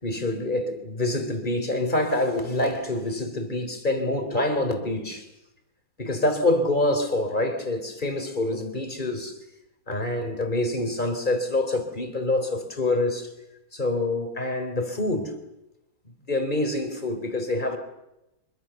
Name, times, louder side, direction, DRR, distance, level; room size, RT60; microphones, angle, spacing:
voice 1, 0.0-5.3 6.0-9.4 9.9-13.3 13.7-15.4 16.3-17.8, left 2 dB, 25° left, 3.7 m, -26 dB
26.0 x 24.0 x 7.0 m
omnidirectional pair, 1.8 m